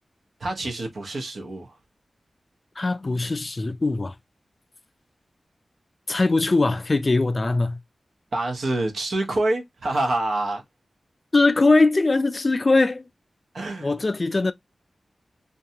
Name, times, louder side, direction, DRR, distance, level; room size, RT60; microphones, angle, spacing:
voice 1, 0.4-1.7 8.3-10.6 13.5-13.9, right 2 dB, 80° right, 0.8 m, -26 dB
voice 2, 2.8-4.1 6.1-7.8 11.3-13.1 13.8-14.5, left 3 dB, 40° left, 0.3 m, -21 dB
2.6 x 2.2 x 2.7 m
wide cardioid pair, 70°, 0 cm